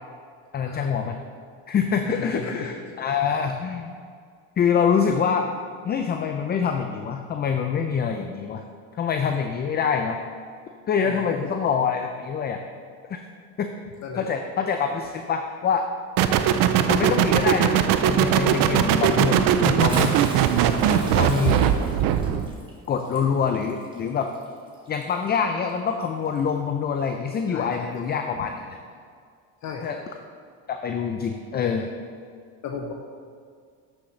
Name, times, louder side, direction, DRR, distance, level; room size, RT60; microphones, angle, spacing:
voice 1, 0.5-1.2 1.7-3.9 4.6-5.5 5.8-8.6 8.9-10.2 10.9-12.6 13.1-13.2 13.6-13.7 14.2-15.9 16.9-20.2 20.6-21.8 22.9-24.3 24.9-28.5 29.8-30.0 30.7-31.9, left 6 dB, 30° left, 5 dB, 0.4 m, -25 dB
voice 2, 2.1-2.7 11.0-11.2 14.0-14.4 27.5-27.9 28.4-28.5 29.6-29.9 32.6-32.9, left 5 dB, 50° left, 2 dB, 0.8 m, -35 dB
sound 1, 16.2-22.5, right 9 dB, 65° right, 0.6 m, -20 dB
Bathtub (filling or washing) / Splash splatter, 19.7-25.4 26.3-26.4 27.9-28.0, right 1 dB, 15° right, 1.5 m, -38 dB
9.4 x 6.4 x 3.2 m, 2.2 s
supercardioid pair, 100°, 36 cm